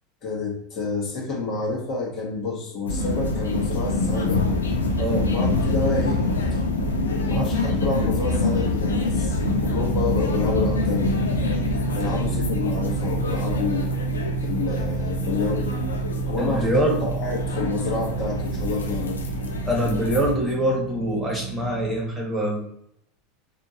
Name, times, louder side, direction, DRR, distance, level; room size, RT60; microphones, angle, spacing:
voice 1, 0.2-4.4 5.2-6.2 7.2-11.2 12.0-13.9 14.4-15.8 16.3-19.2, left 3 dB, 40° left, -2 dB, 1.1 m, -28 dB
sound 1, 2.9-20.4, left 2 dB, 75° left, 0.5 m, -26 dB
voice 2, 5.0-5.3 16.4-17.1 19.6-22.6, right 1 dB, 10° right, -3 dB, 1.3 m, -24 dB
sound 2, 7.3-22.0, right 5 dB, 40° right, 0.6 m, -31 dB
3.6 x 2.5 x 2.8 m, 0.73 s
figure-of-eight pair, 80°, 0 cm